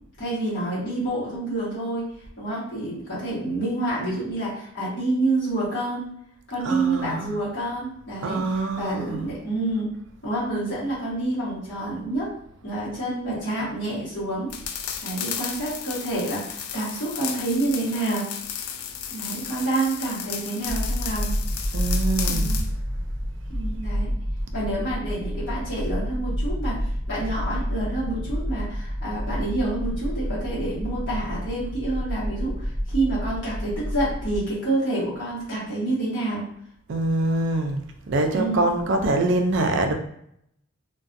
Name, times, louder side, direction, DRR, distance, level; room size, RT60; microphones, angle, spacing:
voice 1, 0.2-2.1 2.4-6.0 6.5-9.9 10.2-12.3 12.6-14.5 15.0-18.3 19.1-21.4 22.3-22.6 23.5-24.1 24.5-26.8 27.1-36.5 38.3-38.7, right 2 dB, 50° left, -9 dB, 1.2 m, -28 dB
voice 2, 6.6-7.4 8.2-9.3 21.7-22.6 36.9-39.9, right 2 dB, 55° right, 4 dB, 0.4 m, -24 dB
sound 1, 14.5-22.7, left 8 dB, 80° left, 0.3 m, -34 dB
sound 2, 20.7-34.4, equal, 5° right, 0.9 m, -29 dB
2.5 x 2.2 x 2.5 m, 0.71 s
head